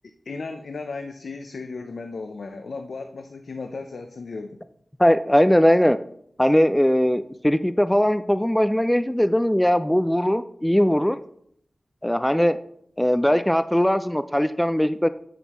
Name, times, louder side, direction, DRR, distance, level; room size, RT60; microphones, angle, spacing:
voice 1, 0.3-4.6, left 3 dB, 80° left, 6 dB, 0.6 m, -35 dB
voice 2, 5.0-6.0 6.4-11.2 12.0-12.6 13.0-15.1, equal, 5° left, 12 dB, 0.3 m, -20 dB
10.0 x 6.3 x 3.0 m, 0.67 s
wide cardioid pair, 85°, 0 cm